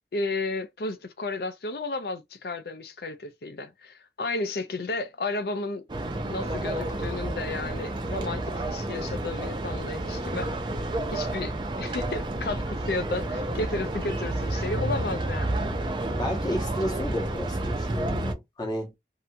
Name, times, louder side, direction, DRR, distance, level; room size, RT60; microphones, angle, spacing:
voice 1, 0.1-5.8 6.2-10.5 11.1-15.6, left 2 dB, 55° left, 0.5 m, -33 dB
sound 1, 5.9-18.3, right 1 dB, 25° right, 0.4 m, -30 dB
voice 2, 16.2-18.9, equal, 25° left, 0.8 m, -32 dB
2.8 x 2.6 x 2.2 m
head